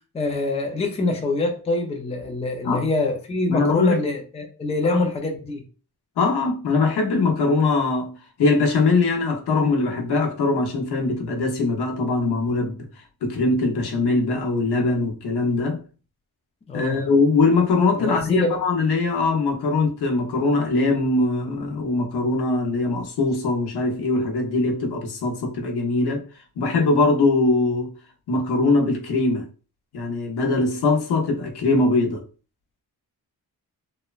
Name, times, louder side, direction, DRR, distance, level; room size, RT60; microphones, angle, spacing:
voice 1, 0.1-5.6 16.7-17.0 18.0-18.6, left 2 dB, 20° left, 0.3 m, -25 dB
voice 2, 3.5-4.0 4.9-5.0 6.2-12.8 13.2-15.8 16.7-26.2 26.6-27.9 28.3-29.4 29.9-32.2, left 3 dB, 80° left, 0.8 m, -21 dB
3.0 x 2.1 x 2.3 m
wide cardioid pair, 165°, 39 cm